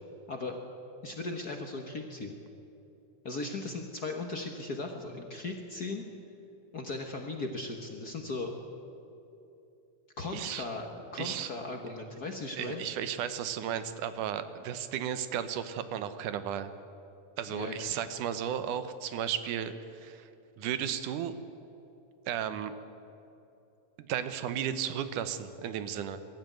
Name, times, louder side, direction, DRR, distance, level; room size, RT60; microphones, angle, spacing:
voice 1, 1.0-2.3 3.2-6.0 6.7-8.5 10.2-12.8 17.5-17.9, left 3 dB, 50° left, 3 dB, 1.1 m, -37 dB
voice 2, 10.3-10.7 11.2-11.5 12.5-16.7 17.4-20.3 20.6-21.3 22.3-22.7 24.0-26.2, right 9 dB, 85° right, 11 dB, 2.5 m, -34 dB
22.5 x 13.5 x 9.2 m, 2.9 s
omnidirectional pair, 3.5 m